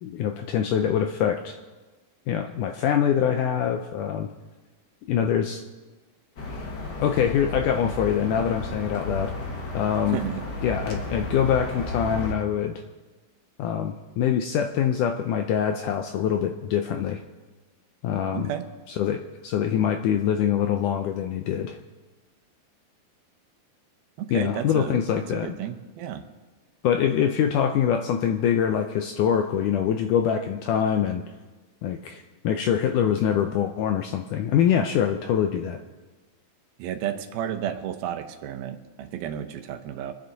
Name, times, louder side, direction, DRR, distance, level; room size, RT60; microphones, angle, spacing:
voice 1, 0.0-1.6 2.3-4.3 5.1-5.6 6.5-6.6 7.0-9.3 9.7-10.2 10.6-12.8 13.6-17.2 18.0-18.5 19.0-21.8 24.3-25.6 26.8-31.2 31.8-35.8, left 8 dB, 85° left, 6 dB, 1.8 m, -24 dB
sound 1, 6.4-12.3, left 2 dB, 50° left, 1.2 m, -33 dB
voice 2, 10.1-10.4 18.3-18.6 24.2-25.0 25.3-26.2 36.8-40.1, right 10 dB, 80° right, 8 dB, 2.8 m, -32 dB
25.5 x 10.0 x 4.0 m, 1.2 s
omnidirectional pair, 4.3 m